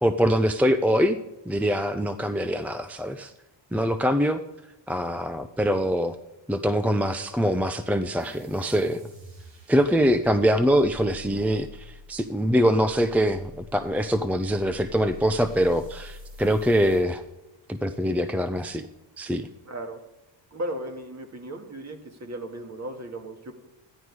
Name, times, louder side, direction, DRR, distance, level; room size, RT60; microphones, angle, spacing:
voice 1, 0.0-1.2 1.5-3.3 3.7-4.4 4.9-6.2 6.5-9.0 9.7-17.2 17.7-18.9 19.2-19.5, equal, 5° right, 9 dB, 0.5 m, -23 dB
sound 1, 8.2-17.1, left 1 dB, 70° right, 4.0 m, -46 dB
voice 2, 19.7-20.0 20.5-23.6, right 1 dB, 35° right, 5 dB, 2.0 m, -36 dB
13.5 x 11.0 x 4.7 m, 0.98 s
cardioid pair, 95°, 46 cm